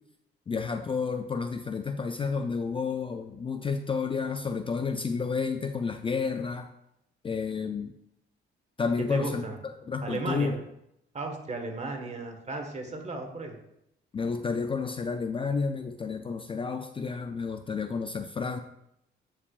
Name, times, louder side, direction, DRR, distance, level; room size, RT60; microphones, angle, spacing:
voice 1, 0.5-6.7 7.2-7.9 8.8-10.6 14.1-18.6, left 5 dB, 25° left, 7 dB, 0.4 m, -31 dB
voice 2, 9.1-9.5 10.0-10.5 11.1-13.6, right 3 dB, 35° right, 3 dB, 1.5 m, -35 dB
9.5 x 4.8 x 2.4 m, 0.81 s
cardioid pair, 90°, 20 cm